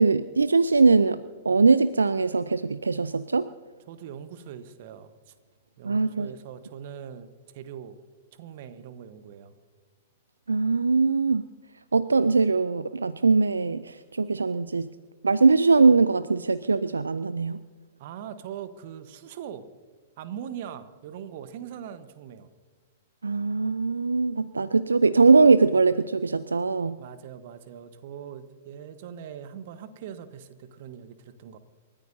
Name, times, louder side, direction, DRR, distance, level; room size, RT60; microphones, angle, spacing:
voice 1, 0.0-3.5 5.8-6.3 10.5-11.4 11.9-14.9 15.2-17.6 23.2-27.0, right 4 dB, 80° right, 15 dB, 0.4 m, -21 dB
voice 2, 3.9-5.3 5.8-8.0 8.3-9.6 18.0-19.7 20.2-22.5 27.0-31.6, right 9 dB, 50° right, 12 dB, 1.1 m, -41 dB
29.0 x 14.0 x 2.7 m, 1.5 s
figure-of-eight pair, 105°, 0 cm